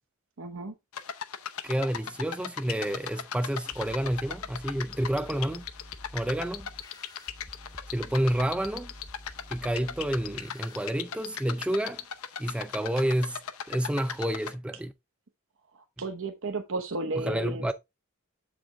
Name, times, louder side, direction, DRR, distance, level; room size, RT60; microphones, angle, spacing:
voice 1, 0.4-0.7 15.7-17.7, right 2 dB, 65° right, 0.9 m, -34 dB
sound 1, 0.9-14.5, left 8 dB, 70° left, 0.7 m, -38 dB
voice 2, 1.6-5.6 6.1-6.7 7.9-8.9 9.5-12.0 12.4-13.4 13.7-14.9 17.3-17.7, right 1 dB, 5° right, 0.4 m, -29 dB
sound 2, 3.7-10.9, left 1 dB, 20° left, 0.8 m, -48 dB
7.5 x 5.1 x 3.4 m
head